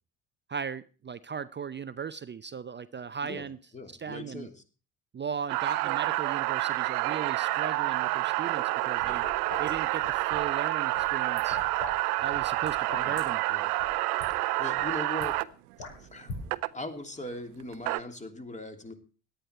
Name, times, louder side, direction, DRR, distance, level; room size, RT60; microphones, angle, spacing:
voice 1, 0.5-3.6 4.0-4.5 5.1-9.2 9.6-11.6 12.2-12.8 13.0-13.4, right 6 dB, 25° right, 15 dB, 0.6 m, -37 dB
voice 2, 3.7-4.6 12.9-13.2 13.5-13.7 14.6-15.4 15.8-16.3 16.7-18.9, left 1 dB, 15° left, 5 dB, 3.0 m, -40 dB
sound 1, 5.5-15.4 16.5-16.7 17.6-18.0, right 19 dB, 75° right, 0.8 m, -28 dB
sound 2, 8.8-10.5 10.9-11.9 12.2-13.2 13.8-13.9 14.2-14.3 14.6-15.2 15.8-16.4, left 3 dB, 65° left, 7.3 m, -42 dB
17.5 x 11.5 x 4.5 m, 0.38 s
hypercardioid pair, 55°, 46 cm